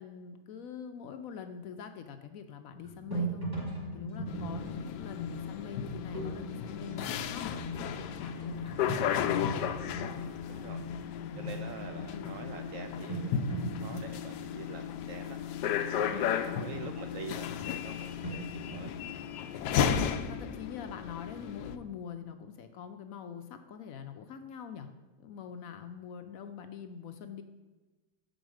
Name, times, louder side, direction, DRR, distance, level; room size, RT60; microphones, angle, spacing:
voice 1, 0.0-3.5 3.9-7.7 8.0-9.7 11.2-11.6 11.9-12.6 16.0-17.3 19.8-24.9 25.2-27.4, left 7 dB, 65° left, 8 dB, 0.9 m, -44 dB
sound 1, 2.7-14.0, left 2 dB, 40° right, 2.1 m, -46 dB
sound 2, 2.8-11.1 11.5-11.9 12.7-12.8 13.1-15.6 18.2-20.1, right 3 dB, 15° right, 1.9 m, -41 dB
sound 3, 4.3-21.8, left 8 dB, 85° left, 1.2 m, -34 dB
voice 2, 10.5-10.9 11.4-15.6 16.0-19.0, right 6 dB, 70° right, 7 dB, 0.8 m, -46 dB
7.2 x 5.2 x 6.2 m, 1.2 s
omnidirectional pair, 1.8 m